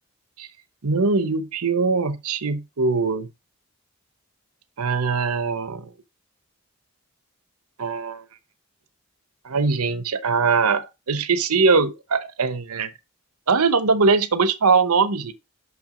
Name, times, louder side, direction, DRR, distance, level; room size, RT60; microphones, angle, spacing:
voice 1, 0.8-3.3 4.8-5.9 7.8-8.2 9.4-12.9 13.5-15.3, right 4 dB, 85° right, 0.8 m, -21 dB
6.2 x 6.0 x 3.8 m
head